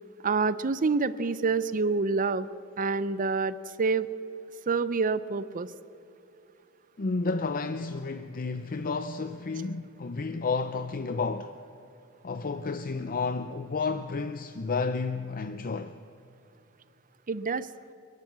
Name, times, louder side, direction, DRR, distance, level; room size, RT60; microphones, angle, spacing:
voice 1, 0.2-2.5 2.8-4.1 4.7-5.7 17.3-17.7, right 4 dB, 40° right, 0.6 m, -27 dB
voice 2, 7.0-11.6 12.2-16.0, left 4 dB, 40° left, 0.6 m, -31 dB
29.5 x 12.0 x 7.4 m
head